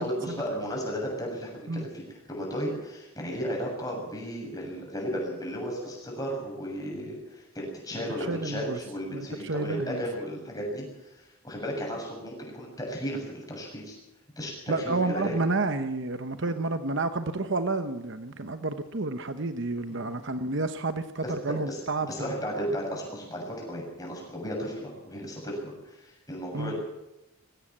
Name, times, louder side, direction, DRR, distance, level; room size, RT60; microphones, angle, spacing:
voice 1, 0.0-14.0 14.4-15.4 16.4-16.5 19.9-20.0 21.2-21.8 22.1-26.9, equal, 15° left, -1 dB, 7.2 m, -34 dB
voice 2, 8.3-8.8 9.1-10.0 14.7-22.3 26.5-26.7, right 3 dB, 55° right, 10 dB, 1.0 m, -30 dB
21.0 x 16.5 x 7.5 m, 0.97 s
head